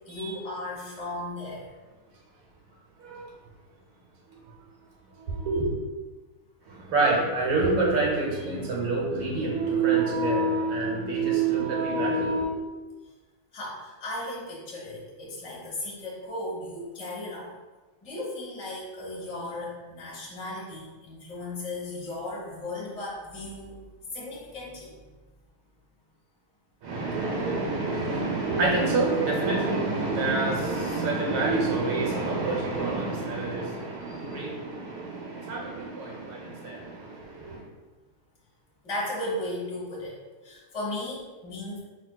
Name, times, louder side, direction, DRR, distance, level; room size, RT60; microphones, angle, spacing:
voice 1, 0.1-1.7 13.5-17.5 18.0-23.7 24.1-25.0 34.1-34.3 38.8-40.2 40.4-41.8, left 1 dB, 25° left, -5 dB, 0.8 m, -36 dB
voice 2, 5.3-5.7 6.9-12.5 26.8-37.6, right 3 dB, 80° right, -2 dB, 1.9 m, -27 dB
4.9 x 3.5 x 2.3 m, 1.3 s
omnidirectional pair, 2.4 m